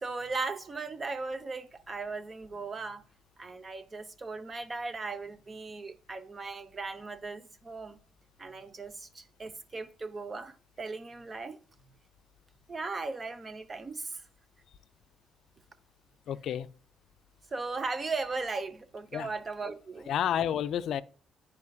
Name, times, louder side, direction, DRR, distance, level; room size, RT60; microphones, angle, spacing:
voice 1, 0.0-3.0 3.4-8.0 8.4-11.6 12.7-14.2 17.5-20.1, right 3 dB, 30° right, 0.7 m, -37 dB
voice 2, 16.3-16.7 19.1-19.3 20.1-21.0, left 9 dB, 70° left, 0.4 m, -30 dB
9.6 x 4.6 x 2.3 m
cardioid pair, 90°, 0 cm